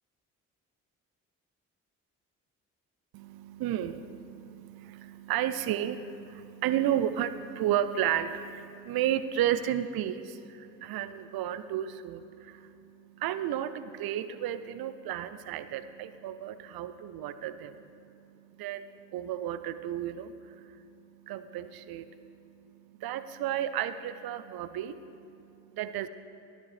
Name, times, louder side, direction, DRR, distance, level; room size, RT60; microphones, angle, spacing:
voice 1, 3.1-26.1, right 11 dB, 70° right, 12 dB, 0.6 m, -33 dB
14.0 x 12.5 x 3.3 m, 2.8 s
hypercardioid pair, 45°, 38 cm